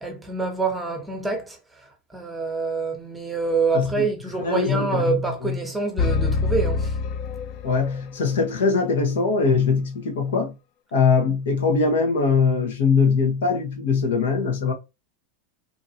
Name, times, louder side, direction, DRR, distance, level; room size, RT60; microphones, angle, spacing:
voice 1, 0.0-1.6 2.1-6.9, right 4 dB, 10° right, 0.8 m, -26 dB
voice 2, 3.7-4.1 4.4-5.6 7.6-10.5 10.9-14.7, left 5 dB, 85° left, 1.0 m, -22 dB
sound 1, 6.0-8.1, left 4 dB, 50° left, 0.5 m, -25 dB
2.8 x 2.5 x 2.8 m
supercardioid pair, 120°, 0 cm